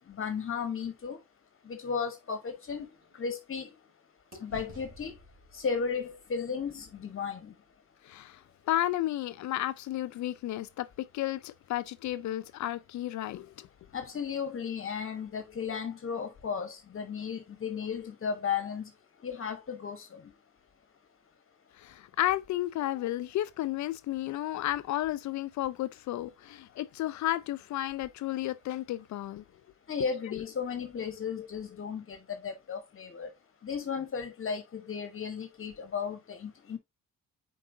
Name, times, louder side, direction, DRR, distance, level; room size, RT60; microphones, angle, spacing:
voice 1, 0.1-1.2 1.7-2.9 3.1-3.7 4.4-5.1 5.5-7.5 13.9-18.9 19.2-20.2 29.9-33.3 33.6-36.8, left 6 dB, 45° left, 1.1 m, -35 dB
sound 1, 1.6-3.9 4.3-8.5, right 2 dB, 55° right, 3.4 m, -55 dB
voice 2, 8.1-8.4 8.7-13.7 21.8-29.4, left 14 dB, 70° left, 0.5 m, -32 dB
7.5 x 4.7 x 2.7 m
cardioid pair, 90°, 30 cm